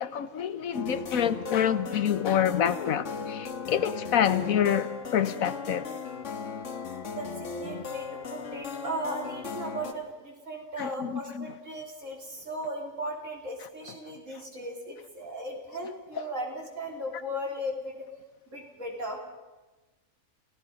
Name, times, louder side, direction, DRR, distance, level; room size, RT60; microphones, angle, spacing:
voice 1, 0.0-5.9 10.8-11.5, left 9 dB, 90° left, 1.4 m, -27 dB
sound 1, 0.7-9.9, left 5 dB, 60° left, 1.7 m, -37 dB
voice 2, 6.7-18.1 18.5-19.2, equal, 65° right, 4.0 m, -37 dB
29.0 x 17.5 x 5.4 m
omnidirectional pair, 1.4 m